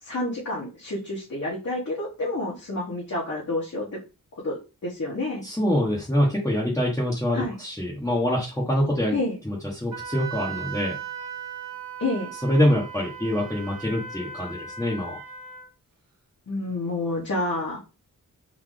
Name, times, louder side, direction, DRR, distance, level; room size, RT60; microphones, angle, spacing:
voice 1, 0.0-4.0 4.4-5.4 7.3-7.5 9.1-9.4 12.0-12.3 16.5-17.8, left 2 dB, 55° left, -6 dB, 1.2 m, -29 dB
voice 2, 5.4-9.2 9.4-11.0 12.4-15.1, equal, 10° left, -5 dB, 1.0 m, -25 dB
Wind instrument woodwind instrument, 9.9-15.7, right 6 dB, 80° right, 1.3 m, -37 dB
3.9 x 2.7 x 3.2 m, 0.30 s
wide cardioid pair, 105°, 34 cm